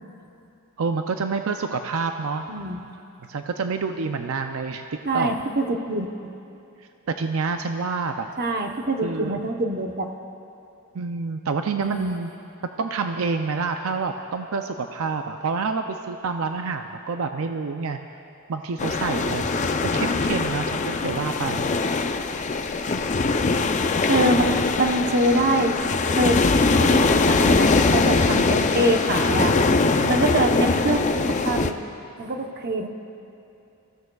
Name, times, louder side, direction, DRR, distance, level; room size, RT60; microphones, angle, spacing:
voice 1, 0.8-2.4 3.3-4.8 5.1-5.3 7.1-8.3 9.0-9.4 10.9-12.3 12.8-18.0 18.5-21.7 30.0-30.2, right 4 dB, 65° right, 6 dB, 0.5 m, -28 dB
voice 2, 2.5-2.8 5.0-6.1 8.4-10.1 11.8-12.2 24.0-25.8 26.1-26.4 26.8-29.5 30.1-31.8 32.2-32.9, right 1 dB, 45° right, 3 dB, 0.9 m, -24 dB
sound 1, 18.8-31.7, left 3 dB, 35° left, 0.5 m, -22 dB
25.5 x 15.0 x 2.3 m, 2.7 s
head